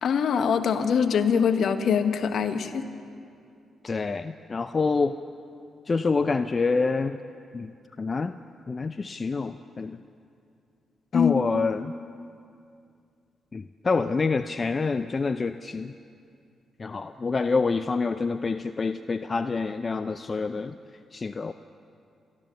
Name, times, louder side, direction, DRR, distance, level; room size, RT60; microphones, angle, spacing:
voice 1, 0.0-2.8 11.1-11.4, left 7 dB, 65° left, 9 dB, 1.3 m, -23 dB
voice 2, 3.8-5.1 5.9-7.2 7.5-7.7 8.0-8.3 8.7-10.0 11.1-11.9 13.5-15.9 16.8-20.7 21.1-21.5, left 4 dB, 40° left, 10 dB, 0.6 m, -27 dB
29.5 x 13.0 x 7.2 m, 2.5 s
hypercardioid pair, 45°, 0 cm